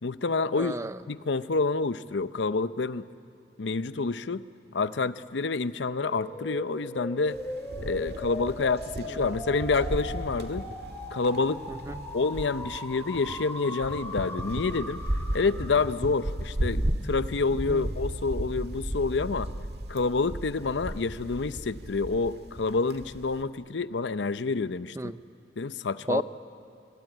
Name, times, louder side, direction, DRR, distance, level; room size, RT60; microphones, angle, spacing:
voice 1, 0.0-0.8 1.1-3.1 3.6-4.4 4.7-7.4 7.8-10.7 11.1-11.6 12.1-15.0 15.3-19.5 19.9-25.0 25.6-26.2, left 4 dB, 80° left, 0.7 m, -28 dB
voice 2, 0.5-1.1 9.0-9.3 11.7-12.1 17.6-17.9 24.9-25.2 26.1-26.2, right 2 dB, 15° right, 0.6 m, -33 dB
sound 1, 6.0-15.9, left 1 dB, 10° left, 4.4 m, -39 dB
sound 2, 7.3-23.4, right 1 dB, 65° right, 1.7 m, -35 dB
27.5 x 22.0 x 9.1 m
head